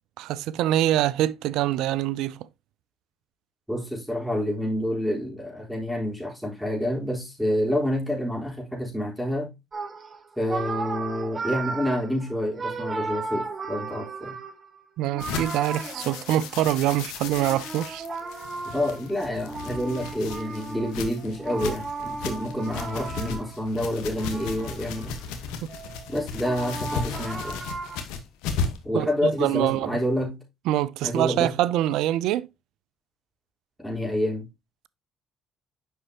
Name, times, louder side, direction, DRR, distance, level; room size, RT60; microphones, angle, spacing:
voice 1, 0.2-2.5 15.0-18.1 28.9-30.0 30.7-32.5, right 13 dB, 80° right, 0.4 m, -25 dB
voice 2, 3.7-9.5 10.4-14.4 18.7-25.1 26.1-27.6 28.8-30.4 31.0-31.5 33.8-34.5, equal, ahead, 3.7 m, -28 dB
sound 1, 9.7-16.7 17.3-23.7 24.1-25.3 25.7-28.0, right 4 dB, 40° right, 1.5 m, -35 dB
sound 2, 15.2-28.9, left 5 dB, 85° left, 1.2 m, -35 dB
8.1 x 5.5 x 2.8 m
supercardioid pair, 65°, 0 cm